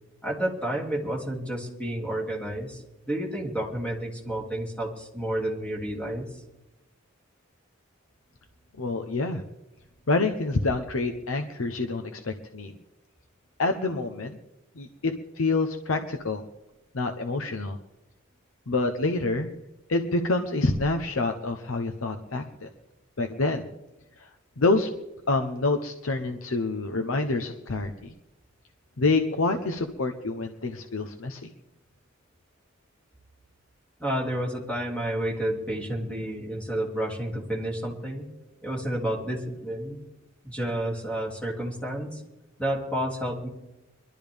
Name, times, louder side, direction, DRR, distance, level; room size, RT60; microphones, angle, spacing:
voice 1, 0.2-6.2 34.0-38.3 38.6-40.0 40.4-42.2 42.6-43.5, right 1 dB, 5° left, -2 dB, 2.6 m, -30 dB
voice 2, 8.8-9.4 10.1-12.7 13.6-14.4 14.8-16.4 16.9-17.8 18.7-19.5 19.9-22.7 23.2-23.7 24.2-24.3 24.6-24.9 25.3-28.1 29.0-31.5, left 3 dB, 85° left, 6 dB, 0.8 m, -27 dB
23.0 x 12.5 x 3.5 m, 0.93 s
head